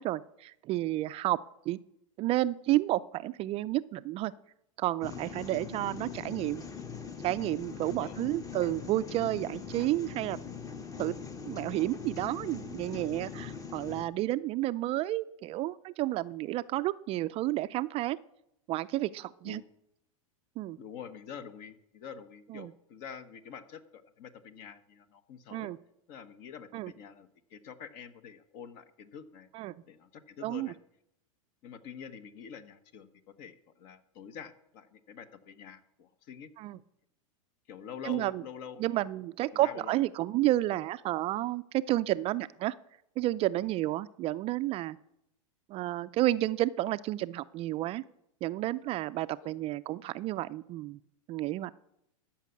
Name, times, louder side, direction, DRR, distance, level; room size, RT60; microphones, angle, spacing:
voice 1, 0.0-1.4 1.7-1.8 2.2-4.3 4.8-6.6 7.2-10.4 11.0-11.1 11.5-18.2 18.7-19.6 20.6-20.8 22.5-22.7 25.5-25.8 26.7-26.9 29.5-29.7 30.4-30.7 36.6-36.8 38.0-38.4 38.8-42.7 43.2-45.0 45.7-48.0 48.4-51.0 51.3-51.7, right 16 dB, 35° right, 14 dB, 0.4 m, -31 dB
sound 1, 5.0-14.0, left 6 dB, 20° left, 0.9 m, -42 dB
voice 2, 7.8-8.2 19.4-19.6 20.8-25.7 26.1-29.5 29.8-30.8 31.6-36.5 37.7-39.0 39.5-39.9 49.4-49.6, left 7 dB, 50° left, 12 dB, 1.2 m, -47 dB
13.5 x 5.8 x 8.3 m, 0.81 s
hypercardioid pair, 115°, 18 cm